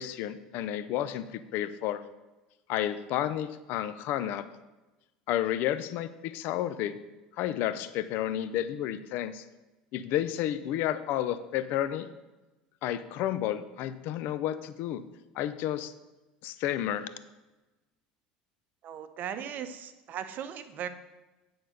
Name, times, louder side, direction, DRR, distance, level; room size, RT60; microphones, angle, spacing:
voice 1, 0.0-2.0 2.7-4.4 5.3-7.0 7.4-9.4 9.9-12.1 12.8-15.0 15.3-15.9 16.4-17.1, left 12 dB, 60° left, 12 dB, 0.5 m, -31 dB
voice 2, 18.8-20.9, right 9 dB, 50° right, 10 dB, 0.7 m, -38 dB
8.6 x 4.0 x 6.4 m, 1.1 s
hypercardioid pair, 80°, 4 cm